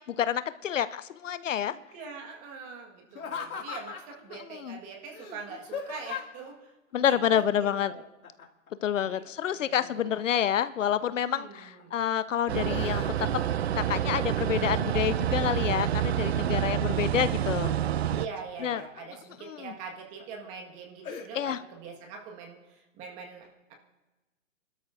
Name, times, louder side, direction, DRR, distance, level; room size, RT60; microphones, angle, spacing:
voice 1, 0.0-1.7 4.6-4.8 6.9-7.9 8.8-13.3 13.7-17.7 18.6-18.8 19.5-19.7 21.3-21.6, left 9 dB, 65° left, 15 dB, 0.6 m, -28 dB
voice 2, 1.7-6.8 7.0-7.5 7.7-8.0 9.0-9.2 9.5-10.2 11.3-11.9 18.1-23.7, right 5 dB, 20° right, 2 dB, 1.6 m, -43 dB
Laughter, 3.1-4.2 5.1-6.5 8.2-8.7 9.0-10.6 11.2-11.8 12.3-13.5 13.9-14.5 15.0-15.8 16.2-17.1 18.2-19.1 19.6-19.7 20.2-20.5 21.0-21.3, left 6 dB, 85° left, 2.4 m, -40 dB
sound 1, 12.5-18.3, right 11 dB, 50° right, 0.5 m, -28 dB
29.5 x 12.5 x 2.6 m, 1.1 s
hypercardioid pair, 160°, 41 cm